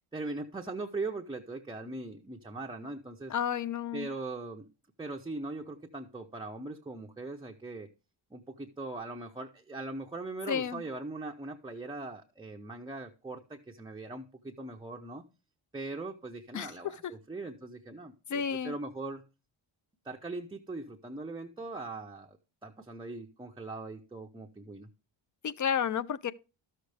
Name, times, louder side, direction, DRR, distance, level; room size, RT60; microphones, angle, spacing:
voice 1, 0.1-3.3 3.9-4.7 5.0-7.9 8.3-15.2 15.7-19.2 20.0-22.4 22.6-24.9, right 2 dB, 10° right, 0.6 m, -40 dB
voice 2, 3.3-4.1 10.5-10.8 16.5-17.1 18.3-18.7 25.4-26.3, left 8 dB, 40° left, 0.5 m, -31 dB
12.5 x 6.6 x 3.3 m
cardioid pair, 105°, 49 cm